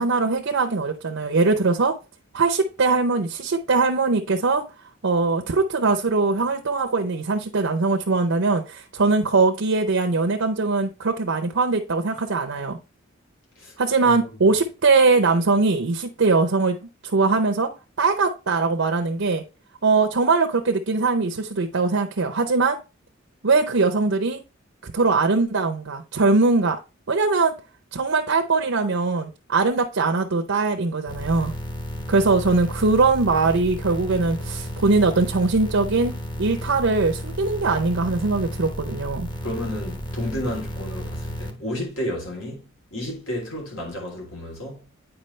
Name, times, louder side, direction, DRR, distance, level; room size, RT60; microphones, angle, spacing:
voice 1, 0.0-1.9 2.3-4.6 5.0-12.8 13.8-17.7 18.0-19.4 19.8-22.8 23.4-24.4 24.8-26.8 27.1-27.5 27.9-31.5 32.1-39.3, right 3 dB, 75° right, 0.7 m, -21 dB
voice 2, 14.0-14.6 39.4-44.9, left 1 dB, 80° left, 3.2 m, -32 dB
sound 1, 31.1-41.5, equal, 25° left, 1.0 m, -33 dB
8.8 x 4.9 x 3.2 m
head